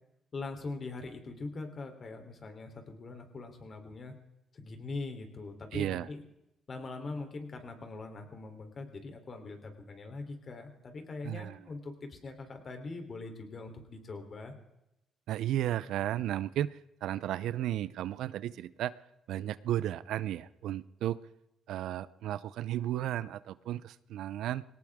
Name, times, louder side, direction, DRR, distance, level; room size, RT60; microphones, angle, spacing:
voice 1, 0.3-4.2 4.5-6.2 6.7-14.5, left 3 dB, 45° left, 5 dB, 3.4 m, -42 dB
voice 2, 5.7-6.1 11.2-11.6 15.3-18.9 19.3-21.2 21.7-24.6, right 12 dB, 80° right, 17 dB, 0.6 m, -34 dB
21.5 x 18.0 x 3.6 m, 0.89 s
cardioid pair, 90°, 0 cm